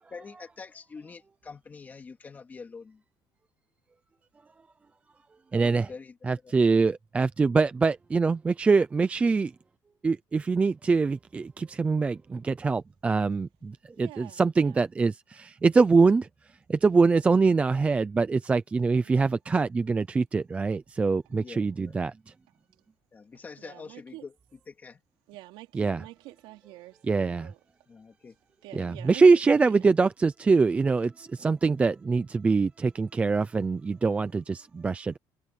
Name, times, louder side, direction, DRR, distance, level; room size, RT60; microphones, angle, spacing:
voice 1, 0.0-3.0 5.5-6.2 6.4-6.5 21.3-21.9 23.1-24.3 24.7-25.0 27.9-28.4 28.7-28.8, left 4 dB, 20° left, 2.8 m, -45 dB
voice 2, 5.5-5.9 6.2-9.5 10.0-12.2 12.4-13.5 14.0-15.1 15.6-16.2 16.8-22.1 25.7-26.0 27.1-27.5 28.7-31.1 31.4-35.2, right 4 dB, 15° right, 0.5 m, -23 dB
voice 3, 14.0-14.8 19.0-19.4 23.3-24.3 25.3-27.6 28.6-29.9, right 18 dB, 75° right, 4.0 m, -47 dB
cardioid pair, 170°, 9 cm